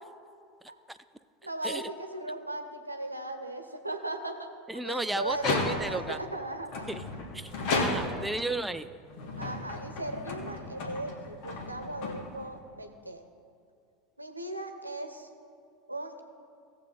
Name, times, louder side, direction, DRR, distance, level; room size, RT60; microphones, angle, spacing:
voice 1, 1.4-4.5 4.8-6.7 9.4-13.2 14.2-15.3 15.9-16.2, right 1 dB, 90° right, 6 dB, 0.8 m, -37 dB
voice 2, 4.7-6.2 6.9-7.0 7.3-8.9, right 2 dB, 5° right, 11 dB, 0.4 m, -34 dB
sound 1, 5.3-6.1 6.7-8.4 9.1-12.6, left 3 dB, 55° left, 1.6 m, -33 dB
17.0 x 7.3 x 3.8 m, 2.4 s
figure-of-eight pair, 80°, 0 cm